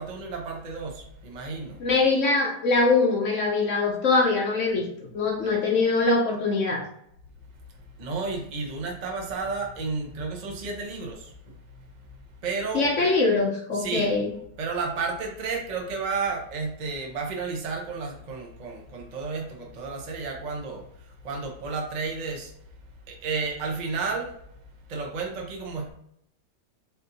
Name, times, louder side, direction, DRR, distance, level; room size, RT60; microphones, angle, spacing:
voice 1, 0.0-1.8 5.4-5.5 8.0-11.3 12.4-13.1 13.7-14.1 14.6-22.5 23.1-24.3 24.9-25.9, right 4 dB, 80° right, 1 dB, 0.4 m, -32 dB
voice 2, 1.8-4.8 5.1-6.8 12.7-14.3, left 3 dB, 60° left, 0 dB, 0.8 m, -23 dB
4.2 x 2.7 x 4.0 m, 0.72 s
omnidirectional pair, 2.1 m